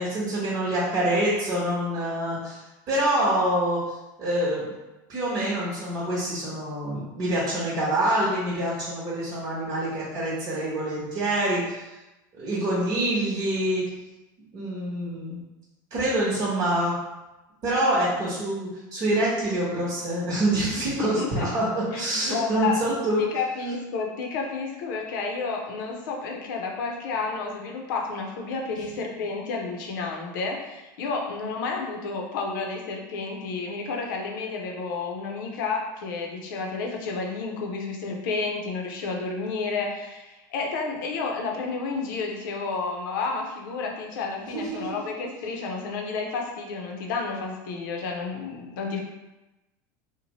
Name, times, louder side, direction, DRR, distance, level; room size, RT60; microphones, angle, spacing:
voice 1, 0.0-2.6 2.9-3.9 4.2-4.7 5.1-11.9 12.3-13.9 14.5-15.4 15.9-16.9 17.6-23.3 44.5-45.0, right 1 dB, 45° right, -8 dB, 1.0 m, -26 dB
voice 2, 21.0-21.5 21.9-22.8 23.3-49.0, left 4 dB, 85° left, 1 dB, 0.6 m, -31 dB
2.7 x 2.1 x 3.0 m, 1.0 s
supercardioid pair, 125°, 10 cm